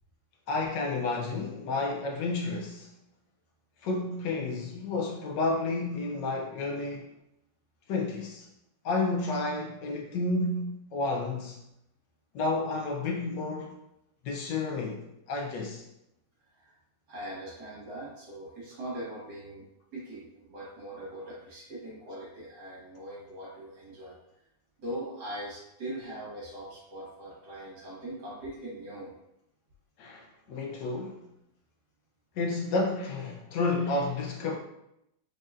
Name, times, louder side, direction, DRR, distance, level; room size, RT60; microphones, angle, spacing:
voice 1, 0.5-2.9 3.8-7.1 7.9-8.5 8.8-11.6 12.3-13.8 14.2-15.8 30.0-31.2 32.4-34.6, left 3 dB, 70° left, 1.1 m, -31 dB
voice 2, 17.1-19.7 19.9-24.1 24.8-29.1 30.5-30.6, right 1 dB, 65° right, 2.4 m, -41 dB
5.0 x 4.2 x 2.4 m
omnidirectional pair, 2.2 m